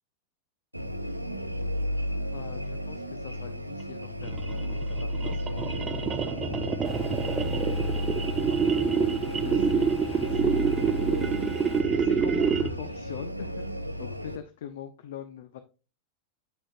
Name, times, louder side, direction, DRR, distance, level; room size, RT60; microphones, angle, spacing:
sound 1, 0.7-14.4, equal, 90° right, 0.7 m, -33 dB
voice 1, 2.3-6.2 6.4-6.7 7.1-11.1 11.9-15.6, left 10 dB, 55° left, 10 dB, 0.6 m, -42 dB
sound 2, 4.2-12.9, right 6 dB, 20° right, 0.5 m, -27 dB
sound 3, 6.8-11.8, right 1 dB, 10° left, 1.0 m, -45 dB
8.4 x 6.2 x 2.5 m, 0.32 s
figure-of-eight pair, 90°, 0 cm